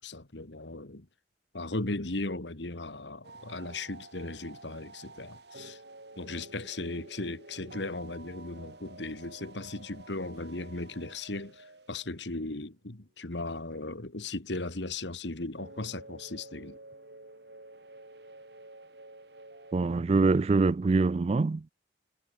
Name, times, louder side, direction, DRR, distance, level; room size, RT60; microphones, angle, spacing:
voice 1, 0.0-1.1 1.5-5.8 6.2-16.8, left 2 dB, 75° left, 2.1 m, -37 dB
sound 1, 3.2-12.4 15.6-20.0, right 2 dB, 65° right, 5.2 m, -50 dB
voice 2, 19.7-21.7, right 3 dB, 35° right, 0.3 m, -24 dB
head